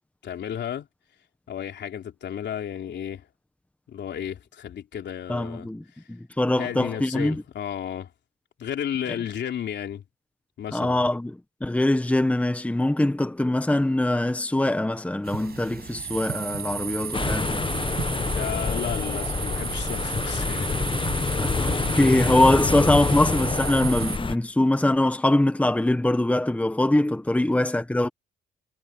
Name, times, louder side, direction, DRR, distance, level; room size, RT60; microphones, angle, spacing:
voice 1, 0.2-0.9 1.5-3.3 3.9-5.7 6.6-8.1 8.6-10.0 10.6-11.0 18.4-20.7, left 9 dB, 65° left, 3.5 m, -33 dB
voice 2, 5.3-5.8 6.4-7.4 10.7-11.3 11.6-17.6 21.4-28.1, left 1 dB, 5° left, 1.4 m, -23 dB
sound 1, 15.2-24.2, right 7 dB, 55° right, 6.0 m, -33 dB
sound 2, 17.1-24.4, left 4 dB, 25° left, 1.0 m, -27 dB
cardioid pair, 90°, 20 cm